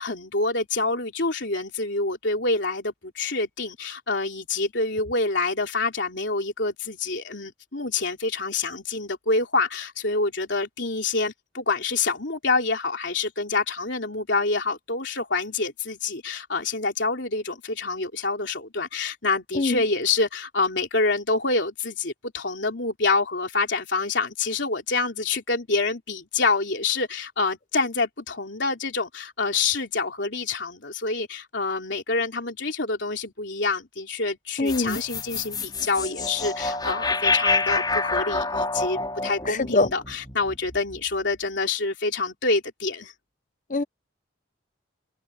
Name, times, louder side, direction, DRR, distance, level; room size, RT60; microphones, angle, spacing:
voice 1, 0.0-43.1, left 3 dB, 60° left, 3.7 m, -27 dB
voice 2, 34.6-35.0 39.5-39.9 43.7-43.8, left 2 dB, 40° left, 1.1 m, -23 dB
sound 1, 34.7-41.0, left 3 dB, 20° left, 6.1 m, -27 dB
open air
head